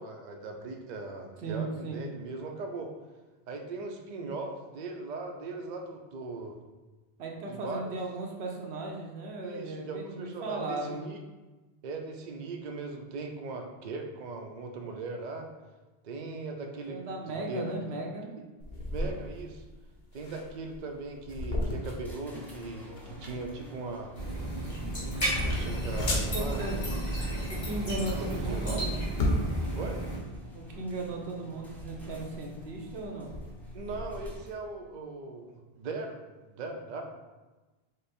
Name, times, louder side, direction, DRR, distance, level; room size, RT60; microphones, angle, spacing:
voice 1, 0.0-2.9 3.5-6.6 7.5-8.0 9.4-11.2 11.8-15.5 16.0-18.0 18.9-19.6 20.1-24.2 25.0-27.0 28.1-28.8 29.7-30.0 33.7-36.2 36.6-37.0, right 3 dB, 55° right, 3 dB, 0.6 m, -39 dB
voice 2, 1.4-2.0 7.2-11.0 16.9-18.3 26.1-26.9 27.5-28.9 30.5-33.3, right 2 dB, 85° right, 0 dB, 1.0 m, -36 dB
sound 1, 18.6-34.3, left 1 dB, 75° left, 1.0 m, -36 dB
sound 2, 22.0-34.8, left 2 dB, ahead, 0.6 m, -50 dB
sound 3, 24.1-30.2, right 1 dB, 45° left, 1.8 m, -33 dB
5.1 x 2.0 x 4.2 m, 1.2 s
omnidirectional pair, 1.0 m